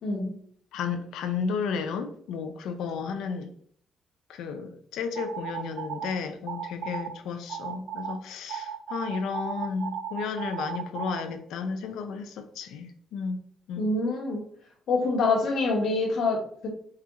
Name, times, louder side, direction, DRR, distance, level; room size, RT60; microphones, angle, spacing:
voice 1, 0.0-0.3 13.8-14.4 14.9-16.7, left 3 dB, 70° left, 1.2 m, -26 dB
voice 2, 0.7-3.5 4.3-13.4 13.7-13.9, left 5 dB, 85° left, 0.5 m, -33 dB
sound 1, 5.2-6.1 6.5-7.1 7.5-8.1 8.5-11.2, right 8 dB, 75° right, 0.4 m, -35 dB
4.3 x 2.4 x 3.5 m
cardioid pair, 90°, 0 cm